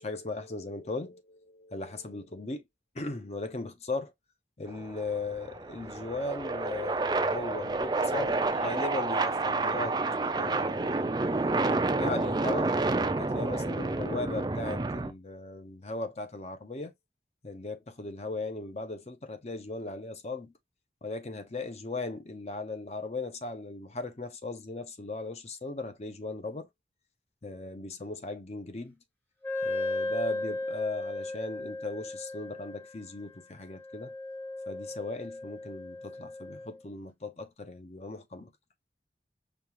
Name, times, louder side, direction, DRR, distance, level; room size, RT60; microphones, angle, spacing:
voice 1, 0.0-2.6 2.9-4.1 4.6-10.0 10.3-11.1 11.9-12.7 13.2-16.9 17.4-20.5 21.0-26.7 27.4-29.0 29.6-34.1 34.7-38.5, left 2 dB, 35° left, 0.6 m, -37 dB
sound 1, 4.7-15.1, right 3 dB, 25° right, 0.4 m, -29 dB
Wind instrument woodwind instrument, 29.4-36.8, left 2 dB, 10° left, 0.9 m, -36 dB
5.2 x 2.4 x 3.0 m
head